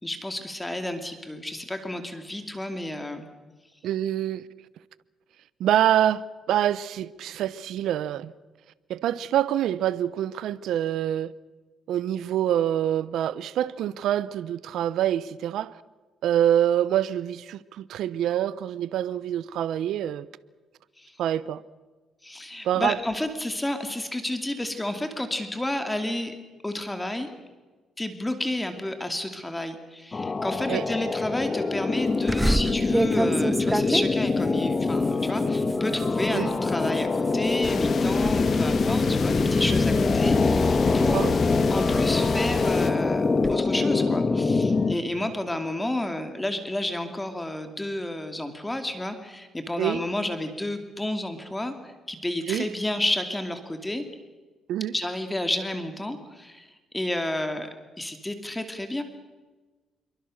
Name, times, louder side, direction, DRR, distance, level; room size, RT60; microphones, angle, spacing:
voice 1, 0.0-3.3 21.0-21.2 22.2-26.3 26.6-27.3 28.0-41.2 41.7-54.0 54.9-56.7 56.9-57.7 58.0-59.0, left 1 dB, 10° left, 2.7 m, -31 dB
voice 2, 3.8-4.5 5.6-8.3 8.9-11.3 11.9-15.8 16.2-20.3 21.2-21.6 22.6-23.0 30.7-30.8 36.3-36.5 41.1-41.3 49.8-50.0 52.5-52.7 54.7-54.9, right 11 dB, 80° right, 0.8 m, -26 dB
sound 1, 30.1-45.0, left 3 dB, 30° left, 1.6 m, -24 dB
sound 2, 32.3-37.6 38.0-38.4 38.8-40.8 41.4-43.6, right 1 dB, 10° right, 1.0 m, -30 dB
sound 3, 37.6-42.9, left 6 dB, 50° left, 1.5 m, -31 dB
27.0 x 23.5 x 6.5 m
cardioid pair, 90°, 0 cm